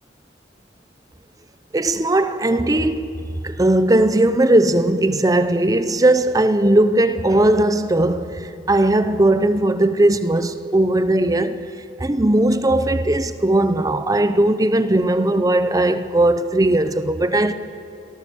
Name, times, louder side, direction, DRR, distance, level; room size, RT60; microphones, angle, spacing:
voice 1, 1.7-11.7 12.0-17.5, right 1 dB, 20° right, 0.7 m, -18 dB
23.5 x 18.0 x 7.0 m
head